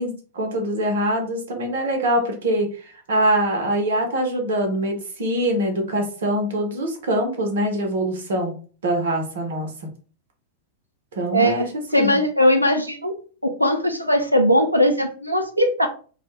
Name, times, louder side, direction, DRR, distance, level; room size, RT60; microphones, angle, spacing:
voice 1, 0.0-8.5 8.8-9.7 11.2-11.7 11.9-12.1, right 1 dB, 60° right, 3 dB, 0.7 m, -23 dB
voice 2, 11.3-11.7 11.9-13.1 13.4-15.9, equal, 90° right, 5 dB, 0.3 m, -19 dB
2.2 x 2.1 x 3.0 m, 0.40 s
figure-of-eight pair, 90°, 0 cm